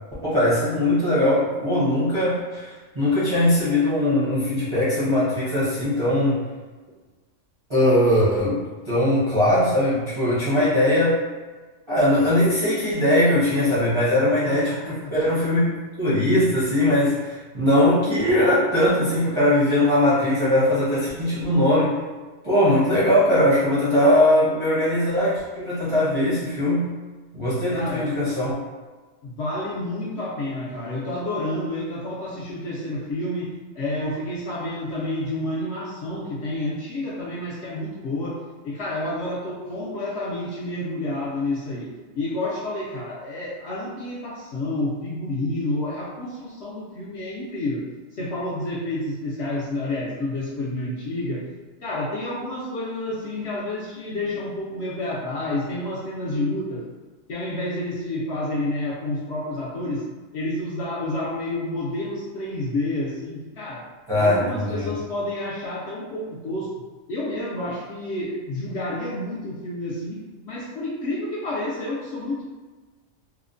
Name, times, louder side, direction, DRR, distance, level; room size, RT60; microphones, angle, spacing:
voice 1, 0.2-6.4 7.7-11.2 11.9-15.6 16.0-22.0 22.4-26.9 27.3-28.6 64.1-64.9, left 1 dB, 30° right, -11 dB, 0.6 m, -20 dB
voice 2, 14.5-15.1 27.7-28.2 29.2-41.9 42.1-47.9 48.1-51.5 51.8-56.8 57.3-60.1 60.3-63.9 64.2-66.7 67.1-72.5, left 1 dB, 65° left, -6 dB, 0.7 m, -29 dB
2.9 x 2.0 x 2.5 m, 1.3 s
omnidirectional pair, 1.4 m